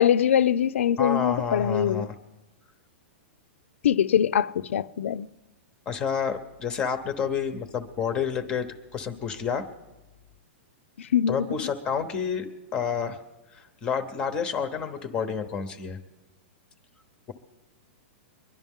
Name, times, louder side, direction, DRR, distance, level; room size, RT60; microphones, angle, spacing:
voice 1, 0.0-2.1 3.8-5.3 11.1-11.5, left 9 dB, 90° left, 0.5 m, -22 dB
voice 2, 1.0-2.1 5.9-9.7 11.3-13.2 13.5-16.0, left 6 dB, 15° left, 0.8 m, -29 dB
23.5 x 11.0 x 3.6 m
supercardioid pair, 175°, 7 cm